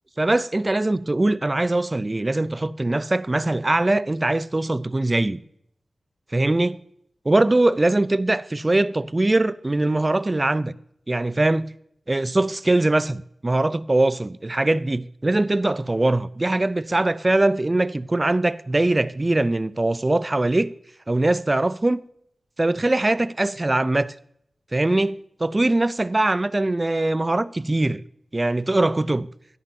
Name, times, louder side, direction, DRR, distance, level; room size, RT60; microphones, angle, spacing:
voice 1, 0.2-5.4 6.3-6.8 7.3-10.8 11.1-11.7 12.1-20.7 21.1-22.0 22.6-24.1 24.7-28.0 28.3-29.3, right 2 dB, 30° right, 0.4 m, -22 dB
12.0 x 11.0 x 2.7 m
wide cardioid pair, 70°, 0 cm